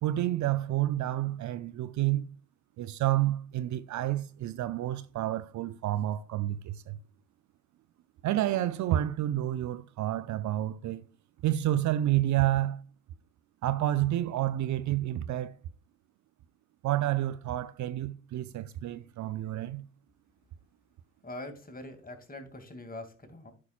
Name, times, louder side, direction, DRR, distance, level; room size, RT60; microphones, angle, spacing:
voice 1, 0.0-2.3 2.8-7.0 8.2-11.0 11.4-12.8 13.6-15.6 16.8-19.8, right 14 dB, 55° right, 0.5 m, -29 dB
voice 2, 21.2-23.5, left 1 dB, 25° left, 2.4 m, -43 dB
12.0 x 5.7 x 2.4 m
hypercardioid pair, 45°, 35 cm